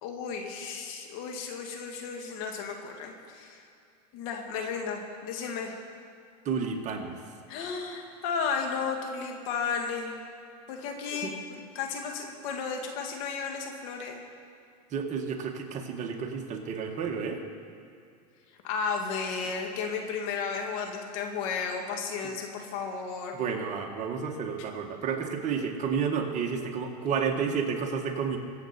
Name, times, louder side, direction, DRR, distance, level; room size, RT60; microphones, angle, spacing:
voice 1, 0.0-3.6 4.1-5.7 7.5-10.2 10.7-14.2 18.6-23.4, left 5 dB, 60° left, 3 dB, 2.1 m, -33 dB
voice 2, 6.4-7.2 11.1-11.3 14.9-17.4 23.3-28.4, right 6 dB, 35° right, 2 dB, 1.7 m, -31 dB
24.0 x 8.1 x 4.4 m, 2.4 s
supercardioid pair, 125°, 21 cm